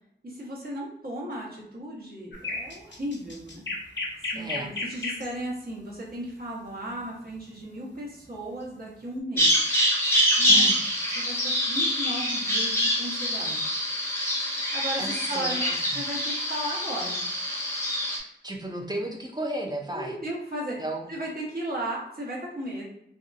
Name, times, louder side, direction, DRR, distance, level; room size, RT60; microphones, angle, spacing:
voice 1, 0.2-3.7 4.2-9.6 10.4-10.7 11.1-13.6 14.7-15.6 15.9-17.2 19.9-20.8 21.1-22.9, right 1 dB, 50° right, -6 dB, 1.1 m, -35 dB
sound 1, 2.3-5.3 7.4-7.6, left 2 dB, 70° left, 0.6 m, -33 dB
voice 2, 4.3-4.7 10.5-10.8 15.0-16.0 18.4-20.2 20.8-21.1, right 1 dB, 20° right, 0 dB, 0.6 m, -34 dB
Bird vocalization bird call bird song, 9.4-18.2, equal, 15° left, 0.8 m, -25 dB
2.7 x 2.3 x 2.5 m, 0.77 s
wide cardioid pair, 55°, 19 cm